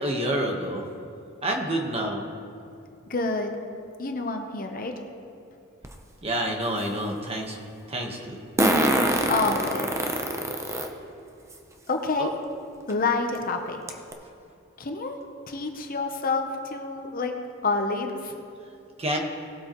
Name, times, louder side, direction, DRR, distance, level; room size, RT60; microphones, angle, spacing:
voice 1, 0.0-0.8 1.4-2.2 6.2-7.6 7.9-8.4 12.2-12.3 19.0-19.2, right 1 dB, 30° right, 1 dB, 1.3 m, -28 dB
voice 2, 3.1-3.6 4.0-4.9 9.3-10.1 11.9-12.3 12.9-13.8 14.8-15.2 15.5-17.3 17.6-18.3, left 3 dB, 45° left, 4 dB, 0.9 m, -28 dB
Fart, 5.8-5.9 8.6-10.9 11.5-11.6 12.9-13.0 13.4-13.5 13.9-14.1, right 1 dB, 15° right, 0.8 m, -23 dB
19.0 x 8.3 x 3.1 m, 2.6 s
head